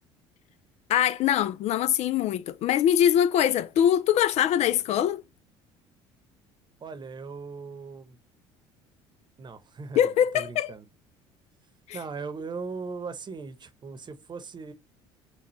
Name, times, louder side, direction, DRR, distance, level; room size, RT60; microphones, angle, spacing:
voice 1, 0.9-5.2 10.0-10.7 11.9-12.0, left 10 dB, 55° left, 0.4 m, -23 dB
voice 2, 6.8-8.2 9.4-10.8 11.9-14.7, right 4 dB, 35° right, 0.9 m, -39 dB
6.1 x 2.3 x 3.1 m
hypercardioid pair, 75°, 14 cm